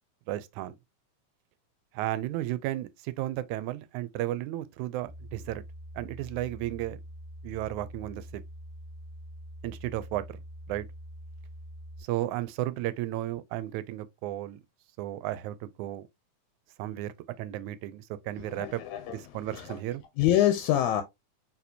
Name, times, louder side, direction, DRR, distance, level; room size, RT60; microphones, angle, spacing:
voice 1, 0.3-0.8 1.9-5.6 6.0-7.0 7.4-8.4 9.6-10.4 10.7-10.9 12.0-14.6 15.0-16.1 16.8-18.8 19.1-20.0, right 15 dB, 90° right, 2.0 m, -34 dB
sound 1, 5.0-12.0, equal, 55° right, 0.6 m, -45 dB
voice 2, 18.4-19.8 20.2-21.0, left 12 dB, 85° left, 2.0 m, -26 dB
4.6 x 4.3 x 2.7 m
omnidirectional pair, 3.3 m